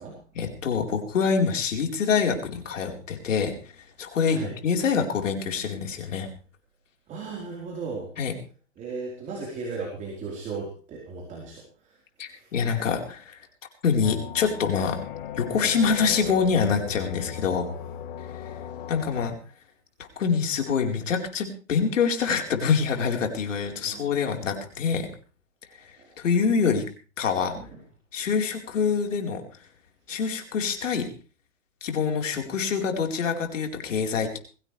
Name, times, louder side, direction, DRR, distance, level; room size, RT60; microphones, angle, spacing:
voice 1, 0.3-3.5 4.0-6.3 8.2-8.3 12.2-13.4 13.8-15.0 15.3-17.7 18.9-19.3 20.0-25.1 26.2-26.8 27.2-27.5 28.1-29.4 30.1-31.1 31.8-34.4, left 6 dB, 75° left, 3 dB, 4.5 m, -25 dB
voice 2, 7.1-8.1 8.8-12.5 23.8-24.2 25.8-26.2 27.6-27.7, right 4 dB, 20° right, -2 dB, 4.3 m, -37 dB
sound 1, 14.0-19.3, left 9 dB, 45° left, 1.7 m, -37 dB
22.5 x 16.5 x 3.4 m, 0.37 s
hypercardioid pair, 150°, 38 cm